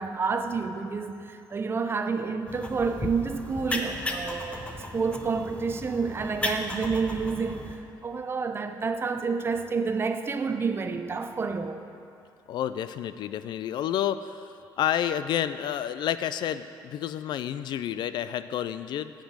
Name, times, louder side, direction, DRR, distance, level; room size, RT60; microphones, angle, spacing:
voice 1, 0.0-4.6 4.9-7.7 8.0-11.8, right 5 dB, 30° right, 8 dB, 0.5 m, -29 dB
sound 1, 2.5-7.8, left 1 dB, 15° left, 0.7 m, -35 dB
voice 2, 12.5-19.1, left 10 dB, 65° left, 13 dB, 0.3 m, -30 dB
8.5 x 5.1 x 7.5 m, 2.7 s
cardioid pair, 115°, 8 cm